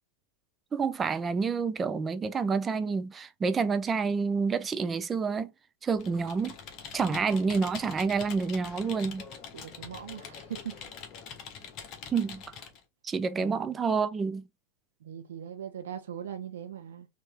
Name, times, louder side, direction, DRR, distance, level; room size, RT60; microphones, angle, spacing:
voice 1, 0.7-5.5 5.8-6.6 6.9-9.2 12.1-12.4 13.0-14.4, right 5 dB, 20° right, 0.6 m, -28 dB
Computer keyboard, 6.0-12.8, left 6 dB, 35° left, 1.1 m, -44 dB
voice 2, 9.5-10.8 13.4-13.6 15.0-17.1, right 9 dB, 60° right, 0.9 m, -40 dB
4.4 x 3.0 x 3.3 m
figure-of-eight pair, 90°, 0 cm